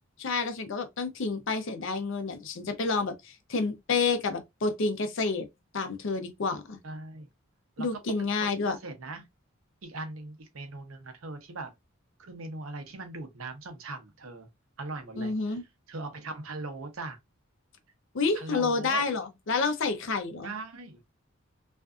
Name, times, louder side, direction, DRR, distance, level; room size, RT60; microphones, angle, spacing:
voice 1, 0.2-5.5 5.7-6.8 7.8-8.8 15.2-15.6 18.1-20.5, left 4 dB, 65° left, 0.6 m, -29 dB
voice 2, 6.8-7.3 7.8-7.9 8.5-9.3 9.8-11.7 12.2-14.5 14.8-15.6 15.9-17.2 18.3-19.1 20.4-21.0, right 3 dB, 80° right, 0.7 m, -40 dB
2.5 x 2.4 x 2.3 m
head